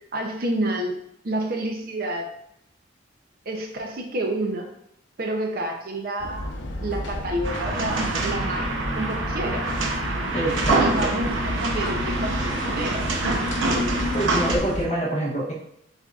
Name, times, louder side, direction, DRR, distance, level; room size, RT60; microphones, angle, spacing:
voice 1, 0.1-0.9 1.2-2.3 3.5-4.7 5.2-6.5 6.8-9.6 10.8-11.3 11.6-13.0, right 1 dB, 50° right, 2 dB, 0.6 m, -29 dB
sound 1, 6.2-14.9, left 1 dB, 75° left, 0.7 m, -32 dB
sound 2, 7.4-14.6, right 2 dB, 90° right, 0.7 m, -26 dB
voice 2, 10.3-11.1 14.1-15.5, right 1 dB, 35° left, -3 dB, 1.1 m, -26 dB
8.0 x 2.7 x 2.4 m, 0.73 s
head